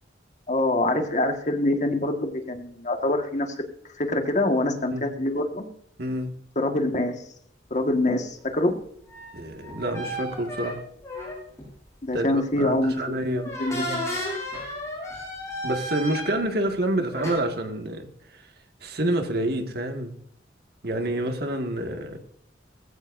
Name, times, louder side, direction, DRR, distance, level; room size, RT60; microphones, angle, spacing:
voice 1, 0.5-3.5 4.0-5.7 6.5-7.2 7.7-8.7 12.0-13.3 13.6-14.2, left 1 dB, 40° left, 1.6 m, -25 dB
voice 2, 6.0-6.3 9.3-10.8 12.1-13.5 13.7-14.0 15.6-18.1 18.8-20.1 20.8-22.2, right 1 dB, 60° right, 1.8 m, -28 dB
sound 1, 9.1-11.7 12.2-12.5 13.3-16.7 17.1-17.3, equal, 15° left, 6.4 m, -33 dB
19.5 x 15.5 x 2.6 m
head